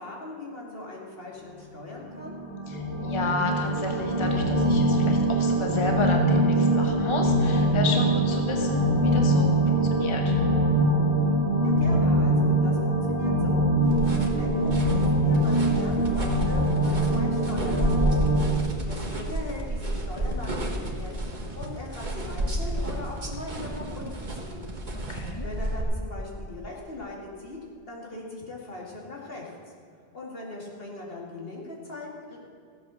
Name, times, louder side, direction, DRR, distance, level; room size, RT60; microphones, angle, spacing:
voice 1, 0.0-2.3 11.6-13.7 14.2-18.2 18.9-24.7 25.4-27.6 27.9-29.5 30.1-32.4, left 2 dB, 60° left, -2 dB, 2.6 m, -40 dB
sound 1, 2.1-18.4, right 1 dB, 10° left, 3.7 m, -23 dB
voice 2, 2.7-10.3 24.9-25.5, left 2 dB, 30° left, 2 dB, 1.0 m, -32 dB
sound 2, 13.8-25.8, right 1 dB, 45° right, 1.6 m, -31 dB
15.0 x 8.0 x 6.4 m, 2.4 s
omnidirectional pair, 1.1 m